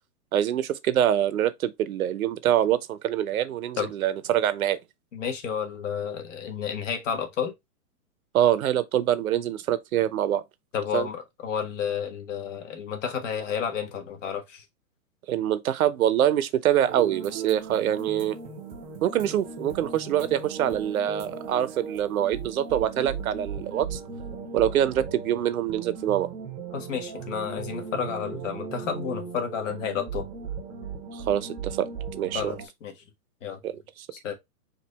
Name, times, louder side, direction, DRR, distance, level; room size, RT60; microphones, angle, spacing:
voice 1, 0.3-4.8 8.3-10.4 10.9-11.1 15.3-18.4 19.0-24.0 24.5-26.3 31.1-31.9 32.2-32.5 33.6-34.1, right 11 dB, 65° right, 0.7 m, -25 dB
voice 2, 5.1-7.5 10.7-14.6 26.7-30.3 32.3-32.9 33.4-33.6 34.1-34.3, left 7 dB, 55° left, 1.5 m, -31 dB
sound 1, 16.8-32.7, right 6 dB, 15° right, 0.7 m, -37 dB
4.6 x 2.8 x 4.0 m
hypercardioid pair, 150°, 46 cm